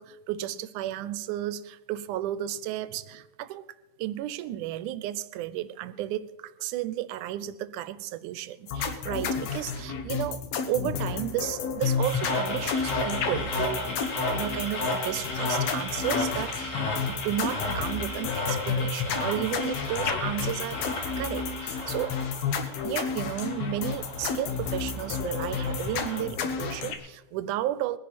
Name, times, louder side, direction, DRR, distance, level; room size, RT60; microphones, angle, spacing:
voice 1, 0.0-3.7 4.0-13.9 14.3-20.9 21.2-22.2 22.8-28.0, right 13 dB, 90° right, 15 dB, 2.1 m, -33 dB
sound 1, 8.7-27.0, left 6 dB, 65° left, 2.0 m, -31 dB
sound 2, 12.0-26.2, left 2 dB, 50° left, 3.4 m, -34 dB
20.5 x 10.5 x 4.2 m, 1.1 s
omnidirectional pair, 3.5 m